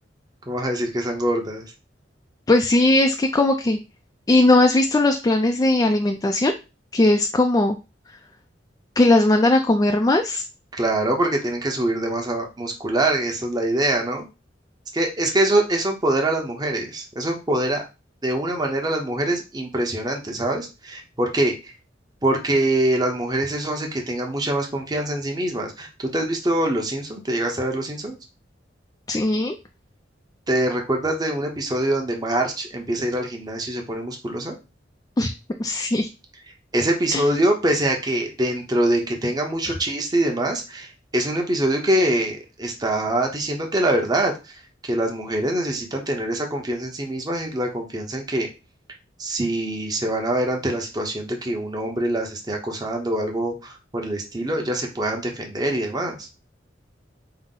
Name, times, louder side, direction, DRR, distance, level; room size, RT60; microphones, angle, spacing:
voice 1, 0.5-1.6 10.7-14.3 14.9-17.8 18.2-21.7 22.2-28.2 30.5-34.6 36.7-44.5 44.8-48.5 49.2-56.3, right 1 dB, 20° right, 2 dB, 0.7 m, -24 dB
voice 2, 2.5-3.8 4.3-6.5 6.9-7.8 9.0-10.4 29.1-29.6 35.2-35.3 35.6-36.1 37.1-37.2 39.7-39.8, left 2 dB, 20° left, 4 dB, 0.3 m, -18 dB
5.5 x 2.0 x 3.7 m, 0.28 s
head